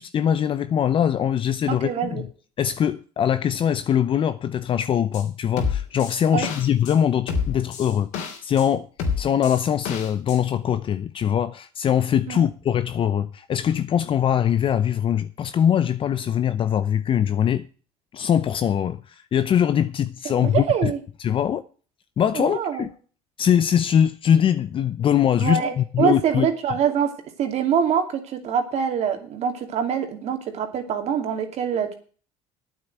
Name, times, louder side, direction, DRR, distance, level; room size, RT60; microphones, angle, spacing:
voice 1, 0.0-2.3 2.6-8.9 9.2-17.6 18.1-20.9 21.2-21.6 22.2-22.9 23.4-26.5, left 9 dB, 45° left, 0.7 m, -22 dB
voice 2, 1.7-2.2 6.3-6.5 12.3-12.4 20.2-21.0 22.3-22.9 25.4-27.1 27.4-31.9, right 7 dB, 60° right, 2.6 m, -24 dB
sound 1, 5.1-5.2 5.6-6.9 7.3-8.7 9.0-10.4 10.7-10.8, left 6 dB, 75° left, 3.0 m, -28 dB
9.1 x 7.7 x 7.9 m
supercardioid pair, 90°, 13 cm